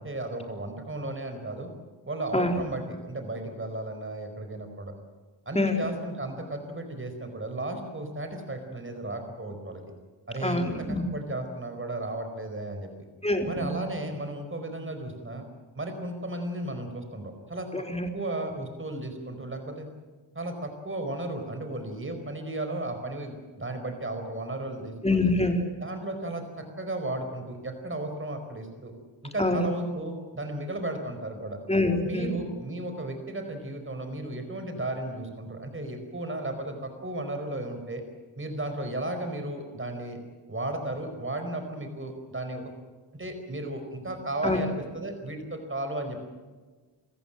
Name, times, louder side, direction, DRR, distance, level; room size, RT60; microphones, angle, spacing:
voice 1, 0.0-1.7 2.0-4.9 5.4-9.8 10.3-12.9 13.5-15.4 15.7-17.7 18.1-19.9 20.3-25.3 25.8-28.9 29.2-31.6 32.0-38.0 38.3-40.2 40.5-42.6 43.1-46.2, right 1 dB, 25° right, 6 dB, 4.8 m, -34 dB
voice 2, 10.4-11.0 13.2-13.8 17.7-18.1 25.0-25.6 29.4-29.7 31.7-32.3 44.4-44.6, left 2 dB, 15° left, 4 dB, 3.8 m, -25 dB
27.5 x 15.0 x 8.9 m, 1.3 s
wide cardioid pair, 90°, 46 cm